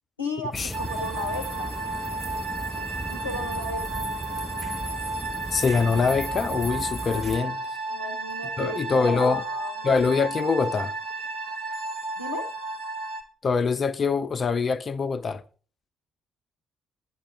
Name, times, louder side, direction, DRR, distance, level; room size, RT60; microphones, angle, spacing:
voice 1, 0.2-1.7 2.7-4.0 7.9-9.9 12.2-12.5, left 3 dB, 80° left, 0.7 m, -35 dB
sound 1, 0.5-7.4, right 1 dB, 5° right, 1.0 m, -36 dB
sound 2, 0.7-13.2, right 2 dB, 70° right, 1.9 m, -33 dB
voice 2, 5.5-7.6 8.6-9.4 9.8-10.9 13.4-15.4, left 5 dB, 40° left, 0.7 m, -24 dB
12.5 x 10.5 x 4.6 m
figure-of-eight pair, 40°, 0 cm